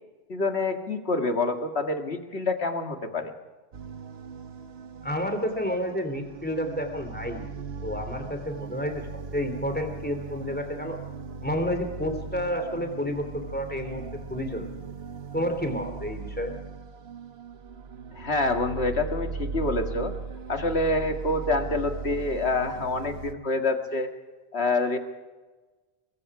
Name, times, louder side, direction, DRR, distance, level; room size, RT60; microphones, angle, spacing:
voice 1, 0.3-3.3 18.2-20.1 20.5-24.1 24.5-25.0, left 2 dB, 75° left, 5 dB, 2.2 m, -27 dB
sound 1, 3.7-23.3, right 5 dB, 70° right, 1.2 m, -38 dB
voice 2, 5.0-7.4 7.8-9.0 9.3-11.0 11.4-14.0 14.3-14.7 15.3-16.5, equal, 10° left, 6 dB, 3.1 m, -30 dB
23.0 x 23.0 x 4.9 m, 1.3 s
omnidirectional pair, 1.1 m